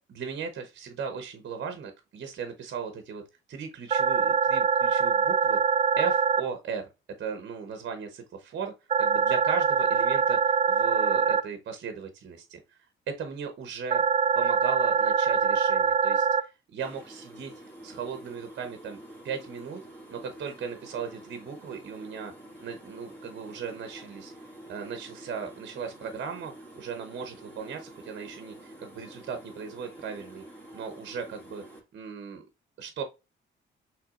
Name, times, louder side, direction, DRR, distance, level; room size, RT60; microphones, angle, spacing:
voice 1, 0.1-3.2 3.5-5.6 6.0-6.8 7.2-8.7 9.0-12.8 13.1-14.0 14.3-17.5 17.8-19.0 19.2-19.8 20.1-22.3 22.6-24.3 24.7-30.4 30.7-31.6 31.9-32.4 32.8-33.0, right 6 dB, 60° right, 0.9 m, -37 dB
sound 1, 3.9-6.4 8.9-11.4 13.9-16.4, right 6 dB, 30° right, 0.4 m, -23 dB
sound 2, 16.8-31.8, right 1 dB, 10° left, 2.2 m, -48 dB
5.8 x 3.3 x 2.5 m
cardioid pair, 90°, 20 cm